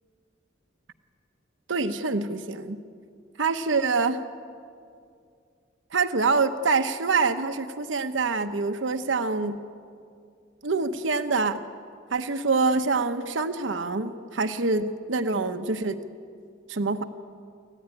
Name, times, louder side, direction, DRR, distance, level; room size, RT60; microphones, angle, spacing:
voice 1, 1.7-2.8 3.4-4.2 5.9-9.6 10.6-11.6 12.1-16.0 16.7-17.0, right 4 dB, 90° right, 9 dB, 1.0 m, -25 dB
27.0 x 15.0 x 9.8 m, 2.4 s
head